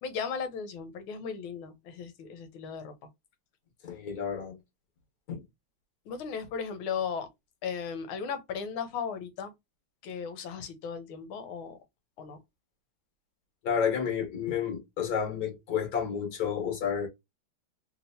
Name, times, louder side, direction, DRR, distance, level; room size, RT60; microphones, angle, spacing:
voice 1, 0.0-2.9 6.1-7.3 7.6-9.5 10.0-11.8 12.2-12.4, left 6 dB, 80° left, 1.5 m, -36 dB
voice 2, 3.8-4.6 5.3-5.4 13.6-17.1, left 7 dB, 50° left, 1.5 m, -30 dB
3.4 x 2.8 x 2.7 m
omnidirectional pair, 2.3 m